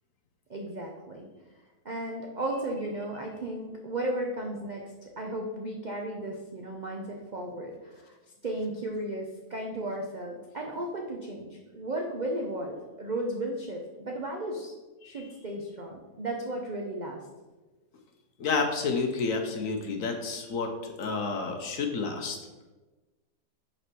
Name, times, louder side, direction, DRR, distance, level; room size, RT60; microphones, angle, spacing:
voice 1, 0.5-1.3 1.8-8.2 8.4-14.7 15.0-17.2, right 1 dB, 85° right, 0 dB, 0.4 m, -35 dB
voice 2, 18.4-22.4, left 4 dB, 60° left, 4 dB, 1.0 m, -30 dB
5.6 x 4.3 x 6.0 m, 1.2 s
omnidirectional pair, 1.9 m